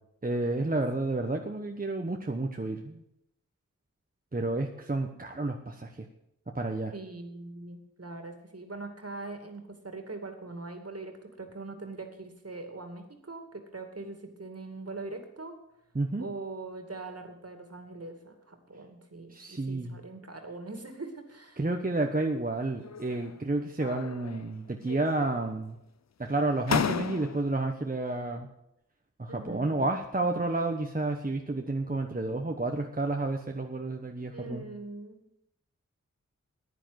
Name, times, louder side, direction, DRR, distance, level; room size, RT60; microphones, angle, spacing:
voice 1, 0.2-3.0 4.3-6.1 6.5-6.9 15.9-16.3 19.3-20.0 21.6-25.8 26.2-28.5 29.2-34.6, right 2 dB, 25° right, 3 dB, 1.1 m, -30 dB
voice 2, 6.9-15.5 16.2-21.6 29.3-29.9 34.3-35.3, right 3 dB, 50° right, 6 dB, 2.5 m, -42 dB
sound 1, 22.8-23.4 23.8-24.6 24.8-25.6 26.2-26.3 26.7-27.6, left 7 dB, 60° left, 0.6 m, -34 dB
10.0 x 10.0 x 8.0 m, 0.83 s
wide cardioid pair, 50°, 31 cm